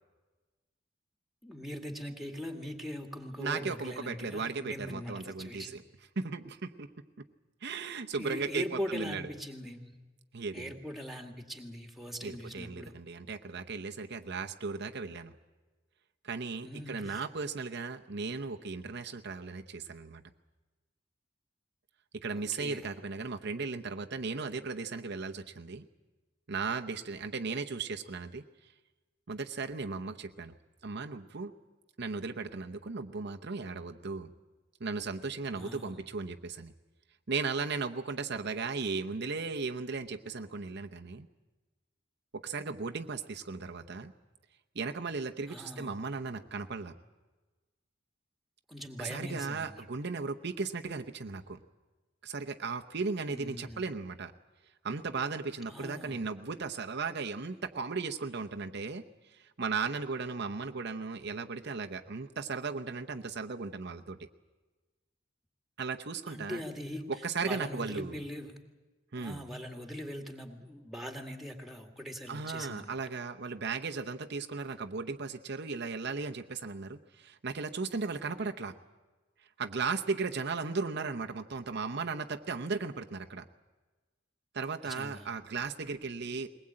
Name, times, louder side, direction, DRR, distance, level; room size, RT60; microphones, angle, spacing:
voice 1, 1.4-5.8 8.2-9.9 10.5-12.9 16.6-17.2 22.5-22.9 35.5-36.0 45.5-45.9 48.7-49.8 53.3-53.9 55.7-56.3 66.3-67.0 67.4-68.6 69.2-73.0 84.8-85.3, equal, ahead, 4 dB, 2.0 m, -41 dB
voice 2, 3.4-5.8 6.2-6.9 7.6-9.2 10.3-10.7 12.2-15.3 16.2-20.2 22.1-25.8 26.5-28.4 29.3-30.5 30.8-31.5 32.0-34.3 34.8-36.7 37.3-41.3 42.3-44.1 44.7-46.9 49.0-51.6 52.2-54.3 54.8-59.0 59.3-64.3 65.8-66.6 67.1-68.2 69.1-69.4 72.3-78.7 79.6-83.4 84.5-86.5, right 4 dB, 60° right, 5 dB, 0.9 m, -36 dB
21.5 x 19.5 x 8.8 m, 1.2 s
head